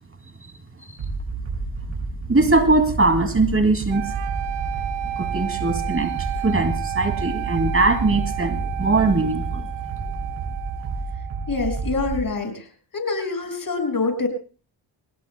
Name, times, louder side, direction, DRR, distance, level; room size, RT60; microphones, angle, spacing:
sound 1, 1.0-12.2, right 3 dB, 70° right, 6.4 m, -30 dB
voice 1, 2.3-4.0 5.2-9.6, right 2 dB, 30° right, 7 dB, 2.5 m, -21 dB
sound 2, 3.9-12.0, right 16 dB, 90° right, 0.9 m, -32 dB
voice 2, 11.5-12.7 12.9-14.3, left 3 dB, 45° left, 5 dB, 6.1 m, -25 dB
26.5 x 18.5 x 2.3 m, 0.37 s
supercardioid pair, 55°, 48 cm